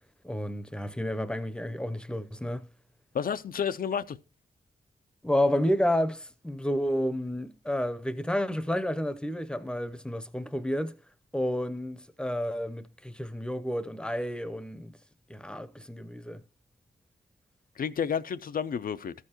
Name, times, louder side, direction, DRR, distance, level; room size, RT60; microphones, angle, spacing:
voice 1, 0.2-2.7 5.2-11.0 11.3-15.0 15.3-16.4, left 1 dB, 5° left, 0.6 m, -30 dB
voice 2, 3.1-4.2 17.8-19.1, left 7 dB, 60° left, 0.4 m, -30 dB
13.5 x 6.7 x 2.9 m
cardioid pair, 80°, 17 cm